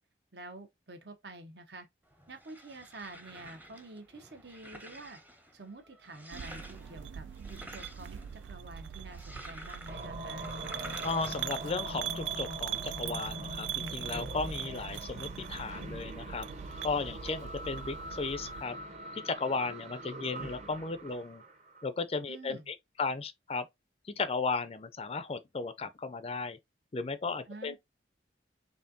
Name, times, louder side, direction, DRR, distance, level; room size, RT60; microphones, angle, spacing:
voice 1, 0.3-1.9 2.3-5.2 5.5-10.5 22.3-22.7 27.5-27.8, right 2 dB, 65° right, 1.1 m, -48 dB
sound 1, 2.1-11.7, right 1 dB, 10° right, 0.7 m, -50 dB
sound 2, 6.3-18.6, right 10 dB, 85° right, 0.4 m, -41 dB
sound 3, 9.9-21.9, right 1 dB, 40° right, 1.0 m, -43 dB
voice 2, 11.0-16.5 16.8-18.8 19.1-21.4 21.8-23.7 24.2-26.6 26.9-27.8, left 4 dB, 35° left, 0.4 m, -35 dB
4.2 x 3.5 x 2.7 m
head